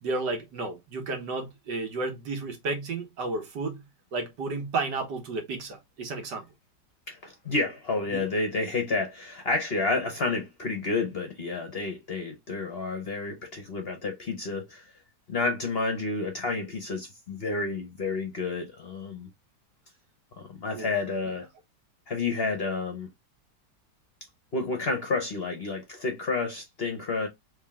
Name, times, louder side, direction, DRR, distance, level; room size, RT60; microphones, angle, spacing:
voice 1, 0.0-3.8 4.1-6.5 8.1-8.2 20.7-20.9, right 3 dB, 75° right, 1.8 m, -32 dB
voice 2, 7.1-14.9 15.3-19.3 20.4-21.5 22.1-23.1 24.5-27.3, left 3 dB, 45° left, 0.9 m, -30 dB
3.6 x 3.4 x 3.5 m
omnidirectional pair, 1.9 m